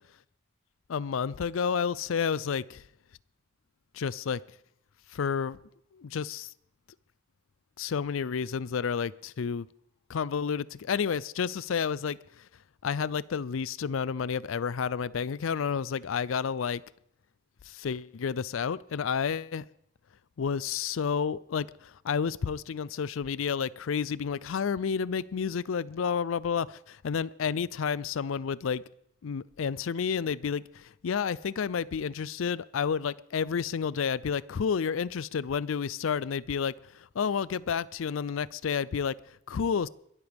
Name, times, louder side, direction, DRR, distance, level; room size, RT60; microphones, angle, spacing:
voice 1, 0.9-2.8 3.9-4.4 5.1-5.6 5.9-6.5 7.8-9.7 10.1-12.5 12.8-16.8 17.7-19.7 20.4-28.8 29.2-39.9, left 6 dB, 90° left, 0.4 m, -30 dB
22.5 x 13.0 x 3.5 m
head